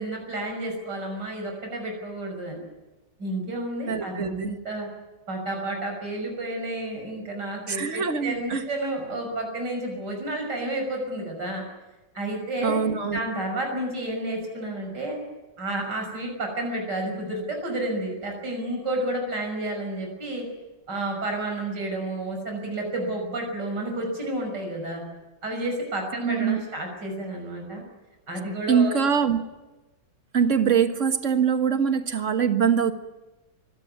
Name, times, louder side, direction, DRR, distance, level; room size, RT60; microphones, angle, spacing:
voice 1, 0.0-2.6 3.2-4.9 5.3-11.6 12.1-12.8 13.1-15.2 15.6-20.5 20.9-25.0 25.4-27.8 28.3-28.9, right 1 dB, 65° right, 2 dB, 6.6 m, -31 dB
voice 2, 3.9-4.5 7.7-8.6 12.6-13.2 26.2-26.6 28.7-29.4 30.3-32.9, right 7 dB, 45° right, 8 dB, 1.8 m, -23 dB
24.0 x 17.5 x 9.6 m, 1.1 s
omnidirectional pair, 2.0 m